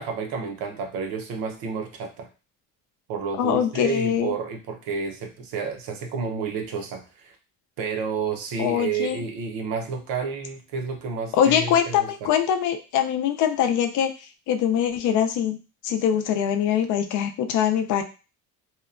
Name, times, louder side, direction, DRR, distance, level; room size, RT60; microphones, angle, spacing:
voice 1, 0.0-2.3 3.1-7.3 7.8-12.3, right 5 dB, 75° right, 3 dB, 0.7 m, -30 dB
voice 2, 3.4-4.3 8.6-9.2 11.3-14.1 14.5-15.6 15.8-18.0, left 9 dB, 60° left, 6 dB, 0.4 m, -23 dB
2.8 x 2.2 x 2.4 m, 0.32 s
cardioid pair, 155°, 35 cm